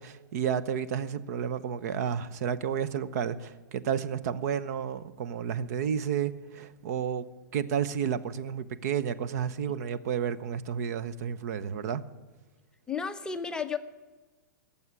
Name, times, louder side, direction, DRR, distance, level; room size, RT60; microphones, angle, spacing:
voice 1, 0.0-7.2 7.5-12.0, right 8 dB, 55° right, 0.9 m, -31 dB
voice 2, 12.9-13.8, left 6 dB, 10° left, 0.7 m, -32 dB
18.5 x 7.2 x 9.7 m
hypercardioid pair, 150°, 10 cm